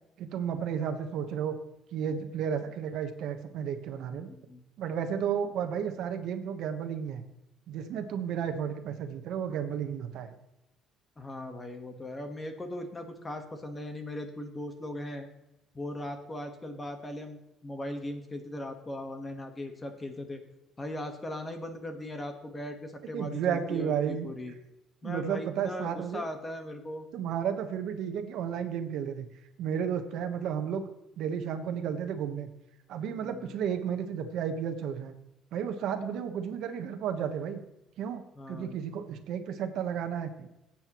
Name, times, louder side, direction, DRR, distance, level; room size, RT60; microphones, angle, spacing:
voice 1, 0.2-1.6 1.9-4.3 4.8-7.3 7.7-10.3 23.1-24.3 25.0-26.2 27.1-29.3 29.6-30.9 31.2-32.5 32.9-35.1 35.5-37.6 38.0-38.2 38.5-40.5, right 8 dB, 65° right, 7 dB, 1.1 m, -32 dB
voice 2, 4.1-4.6 11.2-15.3 15.7-20.4 20.8-24.5 25.0-27.1 33.2-33.5 38.3-38.8, left 1 dB, 15° left, 6 dB, 1.3 m, -39 dB
19.0 x 8.7 x 3.1 m, 0.91 s
cardioid pair, 145°, 0 cm